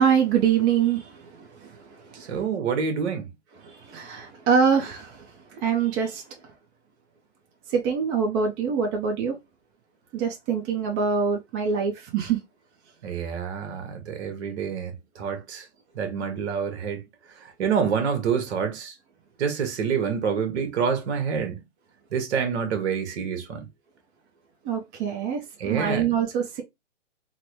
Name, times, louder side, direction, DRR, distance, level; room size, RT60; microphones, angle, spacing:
voice 1, 0.0-2.3 3.6-6.2 7.7-9.4 10.1-12.4 24.6-26.6, right 7 dB, 25° right, 0.8 m, -25 dB
voice 2, 2.2-3.3 13.0-15.7 15.9-17.0 17.4-18.9 19.4-21.6 22.1-23.7 25.6-26.1, right 6 dB, 60° right, 1.2 m, -27 dB
3.8 x 2.2 x 3.1 m
hypercardioid pair, 130°, 37 cm